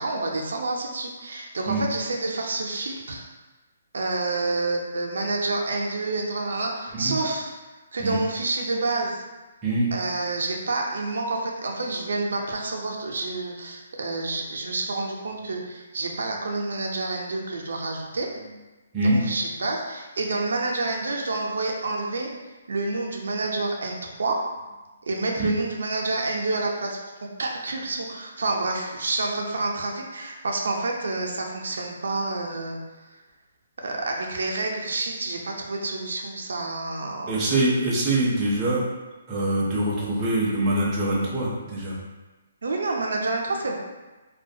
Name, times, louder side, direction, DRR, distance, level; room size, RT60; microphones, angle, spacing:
voice 1, 0.0-3.2 3.9-7.5 7.9-9.2 9.9-18.3 19.0-22.3 22.7-24.4 25.1-32.8 33.8-37.5 42.6-43.8, right 2 dB, 80° right, 0 dB, 0.4 m, -28 dB
voice 2, 37.3-38.8 39.3-42.0, right 1 dB, 15° right, -7 dB, 0.4 m, -24 dB
2.3 x 2.2 x 2.6 m, 1.2 s
hypercardioid pair, 170°, 0 cm